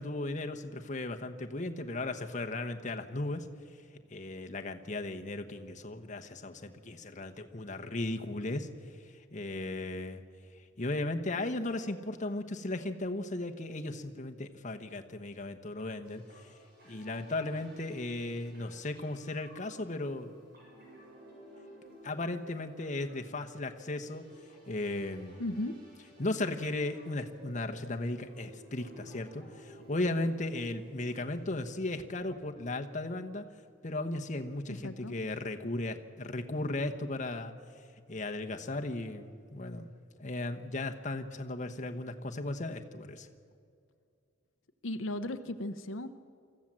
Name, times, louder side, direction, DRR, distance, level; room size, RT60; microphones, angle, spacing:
voice 1, 0.0-3.5 4.1-8.7 9.0-10.2 10.6-16.5 16.8-20.3 22.0-24.2 24.7-25.4 26.2-33.4 33.8-37.5 38.1-39.9 40.2-43.3, left 2 dB, 40° left, 5 dB, 1.1 m, -36 dB
sound 1, 15.8-31.8, equal, 55° right, 7.3 m, -56 dB
voice 2, 25.4-25.7 34.7-35.2 44.8-46.1, left 1 dB, 85° left, 9 dB, 0.9 m, -36 dB
24.0 x 14.5 x 7.5 m, 2.4 s
head